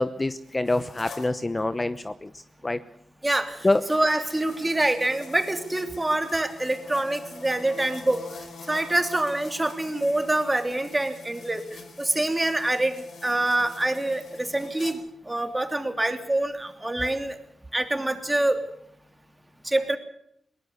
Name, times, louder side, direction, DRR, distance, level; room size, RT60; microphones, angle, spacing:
voice 1, 0.0-2.8 3.6-3.8, left 2 dB, 20° left, 13 dB, 0.8 m, -26 dB
sound 1, 0.6-1.3 3.5-14.9, left 4 dB, 70° left, 4.5 m, -45 dB
voice 2, 3.2-8.2 8.7-17.4 17.7-18.6 19.6-20.0, right 1 dB, 15° right, 7 dB, 3.1 m, -26 dB
22.0 x 19.5 x 7.0 m, 0.71 s
cardioid pair, 80°, 0 cm